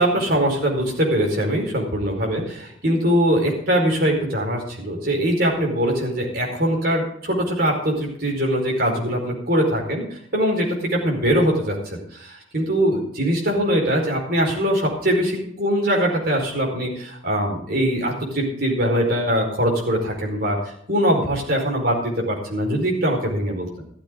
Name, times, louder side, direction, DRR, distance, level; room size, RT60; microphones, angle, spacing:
voice 1, 0.0-23.8, equal, 50° right, 0 dB, 4.7 m, -22 dB
15.0 x 13.0 x 3.8 m, 0.67 s
head